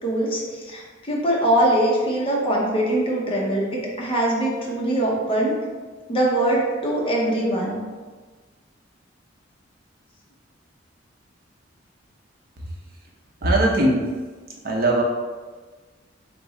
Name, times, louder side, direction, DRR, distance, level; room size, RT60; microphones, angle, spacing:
voice 1, 0.0-5.5 6.1-7.8, right 1 dB, 30° left, -4 dB, 0.9 m, -22 dB
voice 2, 13.4-14.1 14.6-15.0, right 1 dB, 50° right, -1 dB, 0.7 m, -19 dB
3.5 x 2.9 x 4.1 m, 1.4 s
head